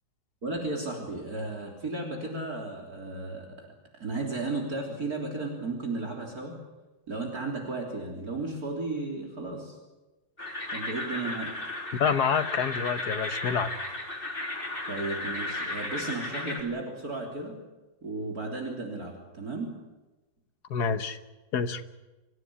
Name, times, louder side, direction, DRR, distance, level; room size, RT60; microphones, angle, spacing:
voice 1, 0.4-3.7 4.0-6.6 7.1-9.8 10.7-11.5 14.9-17.6 18.0-19.7, right 2 dB, 50° right, 0 dB, 3.9 m, -34 dB
sound 1, 10.4-16.6, left 2 dB, 30° left, 3.8 m, -34 dB
voice 2, 12.0-13.7 20.7-21.2 21.5-21.8, left 6 dB, 60° left, 11 dB, 1.6 m, -27 dB
25.5 x 16.0 x 9.8 m, 1.1 s
omnidirectional pair, 2.0 m